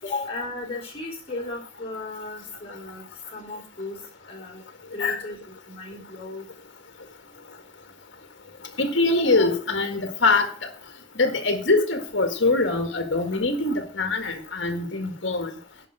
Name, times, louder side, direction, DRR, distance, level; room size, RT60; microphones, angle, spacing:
voice 1, 0.0-3.1 3.3-4.6 4.9-6.5, left 2 dB, 30° left, -2 dB, 3.8 m, -35 dB
voice 2, 8.8-10.5 11.2-15.5, left 3 dB, 65° left, 6 dB, 1.8 m, -23 dB
11.0 x 5.4 x 7.7 m, 0.42 s
head